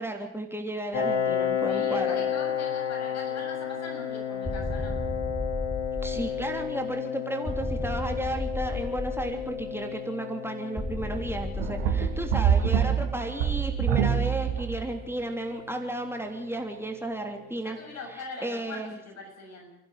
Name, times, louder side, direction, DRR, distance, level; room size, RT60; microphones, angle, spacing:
voice 1, 0.0-2.2 6.0-17.8 18.4-19.0, right 1 dB, 10° right, 3 dB, 3.3 m, -33 dB
Piano, 0.9-16.3, left 8 dB, 75° left, 3.6 m, -33 dB
voice 2, 1.7-5.0 17.6-19.8, left 3 dB, 60° left, 2 dB, 6.8 m, -41 dB
sound 1, 4.4-6.7 7.5-9.8 10.8-13.0, left 1 dB, 10° left, 4.4 m, -34 dB
sound 2, 11.6-15.0, right 8 dB, 70° right, 1.7 m, -25 dB
29.0 x 11.5 x 9.4 m, 0.84 s
figure-of-eight pair, 40°, 30 cm